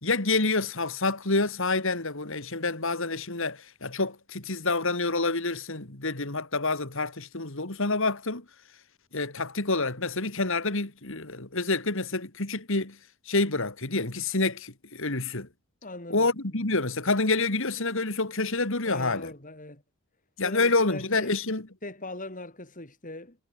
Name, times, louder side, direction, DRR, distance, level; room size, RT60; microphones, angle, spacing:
voice 1, 0.0-8.4 9.1-13.0 13.3-15.5 16.1-19.3 20.4-21.7, left 3 dB, 60° left, 2.7 m, -28 dB
voice 2, 15.8-16.7 18.9-19.8 20.4-21.4 21.8-23.4, left 2 dB, 35° left, 5.5 m, -41 dB
head